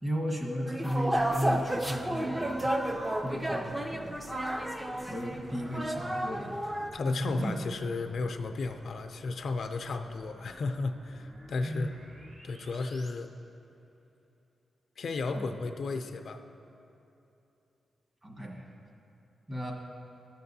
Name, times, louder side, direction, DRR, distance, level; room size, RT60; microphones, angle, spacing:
voice 1, 0.0-2.7 3.2-4.2 5.1-6.6 7.1-7.6 11.6-12.0 15.3-15.5 18.2-18.7 19.5-19.7, equal, 30° right, -1 dB, 1.4 m, -34 dB
sound 1, 0.7-6.9, right 1 dB, 15° right, 0.5 m, -32 dB
sound 2, 1.1-13.1, equal, 60° right, 1.1 m, -53 dB
voice 2, 6.9-11.9 12.4-13.3 15.0-16.4, left 3 dB, 65° left, 7 dB, 0.4 m, -34 dB
15.0 x 6.7 x 2.7 m, 2.9 s
wide cardioid pair, 105°, 0 cm